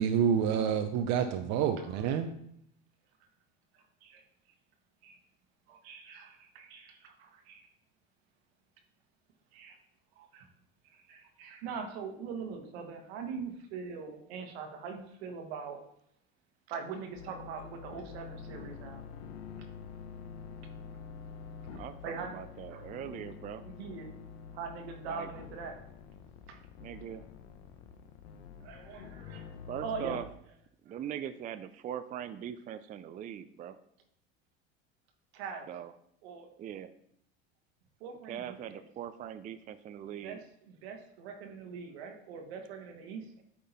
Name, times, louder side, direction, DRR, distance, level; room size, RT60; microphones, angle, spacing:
voice 1, 0.0-2.3, right 8 dB, 55° right, 8 dB, 0.7 m, -28 dB
voice 2, 5.7-7.7 9.5-9.8 10.2-10.4 11.1-15.8 16.7-19.0 22.0-22.3 22.7-22.8 23.6-24.1 24.5-25.8 26.5-26.6 28.6-29.5 29.8-30.2 35.3-35.7 36.2-36.5 38.0-38.8 40.2-43.2, right 5 dB, 80° right, 4 dB, 1.4 m, -42 dB
sound 1, 17.1-30.2, left 6 dB, 80° left, 1.0 m, -47 dB
voice 3, 21.7-23.6 25.1-25.3 26.8-27.2 29.7-30.3 30.9-33.8 35.7-35.9 36.6-36.9 38.3-40.4, right 10 dB, 25° right, 12 dB, 0.3 m, -41 dB
8.6 x 3.7 x 4.1 m, 0.70 s
supercardioid pair, 100°, 31 cm